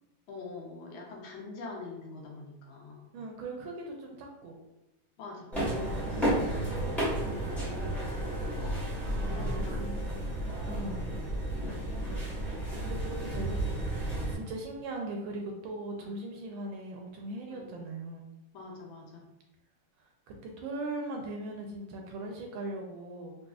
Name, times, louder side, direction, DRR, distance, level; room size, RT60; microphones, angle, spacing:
voice 1, 0.3-3.1 5.2-5.5 6.1-6.7 9.1-10.0 11.5-11.8 15.9-16.2 17.5-17.7 18.5-19.3, left 3 dB, 75° left, -1 dB, 1.4 m, -44 dB
voice 2, 3.1-4.6 7.2-8.0 9.1-9.9 10.7-11.0 12.7-18.3 20.3-23.4, right 2 dB, 75° right, 1 dB, 1.2 m, -40 dB
sound 1, 5.5-14.3, right 1 dB, ahead, 0.5 m, -32 dB
4.0 x 2.5 x 2.3 m, 0.95 s
omnidirectional pair, 2.4 m